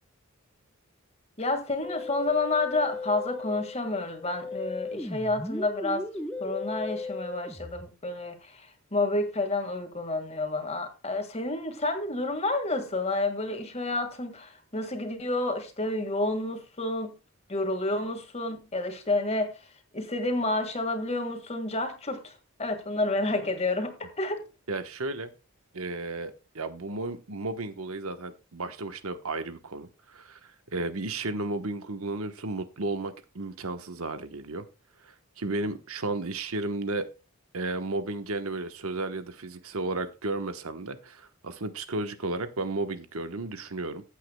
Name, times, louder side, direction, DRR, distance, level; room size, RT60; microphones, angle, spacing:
voice 1, 1.4-6.1 6.4-8.7 8.9-17.2 17.5-19.5 19.9-22.3 22.6-24.4, left 2 dB, 30° left, 1.8 m, -29 dB
Musical instrument, 1.8-7.8, left 3 dB, 5° left, 0.9 m, -37 dB
voice 2, 24.7-25.3 25.7-34.7 35.0-37.1 37.5-44.0, right 2 dB, 75° right, 1.1 m, -33 dB
15.5 x 8.4 x 2.2 m
head